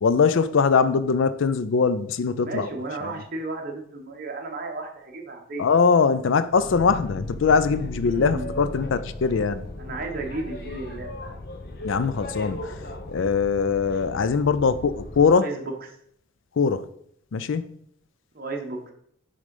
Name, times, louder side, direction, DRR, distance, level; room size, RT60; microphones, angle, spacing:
voice 1, 0.0-2.7 3.0-3.1 5.6-9.7 11.8-12.7 13.1-15.5 16.6-16.9 17.3-17.6, left 5 dB, 65° left, 14 dB, 0.4 m, -21 dB
voice 2, 2.4-5.7 8.0-8.6 9.8-11.4 15.3-16.0 18.3-18.8, right 2 dB, 45° right, 2 dB, 1.1 m, -34 dB
Boat Water vehicle, 6.5-15.3, left 1 dB, 50° left, 0.9 m, -37 dB
6.5 x 3.8 x 5.3 m, 0.68 s
head